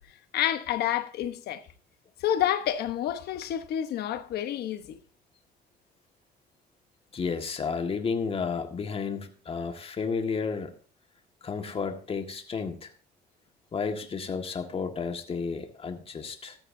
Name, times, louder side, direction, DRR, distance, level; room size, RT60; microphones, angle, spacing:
voice 1, 0.3-1.6 2.2-5.0, left 11 dB, 70° left, 1.2 m, -29 dB
voice 2, 7.1-10.8 11.4-12.9 13.7-16.6, left 5 dB, 35° left, 1.8 m, -32 dB
14.0 x 13.5 x 2.7 m
cardioid pair, 110°, 17 cm